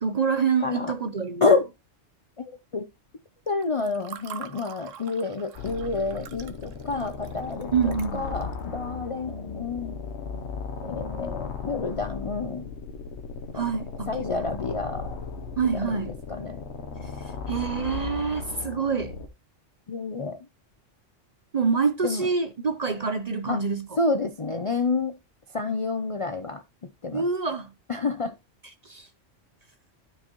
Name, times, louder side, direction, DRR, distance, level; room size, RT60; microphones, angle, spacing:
voice 1, 0.0-1.5 7.7-8.3 13.5-14.2 15.6-16.1 17.0-19.2 21.5-24.0 27.1-27.7 28.6-29.1, right 5 dB, 40° right, 0.6 m, -26 dB
voice 2, 0.6-0.9 1.4-1.7 2.4-2.9 3.5-10.0 10.8-12.7 13.5-13.6 14.1-15.2 16.3-16.6 19.9-20.4 22.0-22.3 23.5-23.6 24.0-25.2 25.5-26.6 27.0-27.2 27.9-28.3, left 3 dB, 45° left, 0.4 m, -28 dB
Water / Fill (with liquid), 3.5-8.6, right 8 dB, 85° right, 1.1 m, -44 dB
sound 1, 5.5-19.3, left 5 dB, 65° left, 1.2 m, -36 dB
12.5 x 4.8 x 3.0 m
omnidirectional pair, 1.3 m